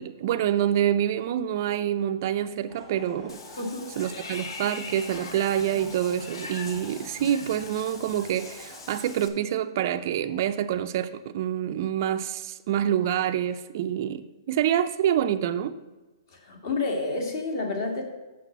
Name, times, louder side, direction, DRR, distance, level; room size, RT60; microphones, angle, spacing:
voice 1, 0.0-3.4 4.0-15.8, right 10 dB, 35° right, 7 dB, 0.4 m, -27 dB
sound 1, 2.7-9.0, left 2 dB, 20° left, 1.7 m, -49 dB
Water / Bathtub (filling or washing), 3.3-9.3, left 4 dB, 70° left, 1.1 m, -41 dB
voice 2, 3.6-3.9 16.3-18.0, left 3 dB, 45° left, 3 dB, 1.7 m, -29 dB
6.0 x 6.0 x 7.2 m, 1.2 s
hypercardioid pair, 165°, 3 cm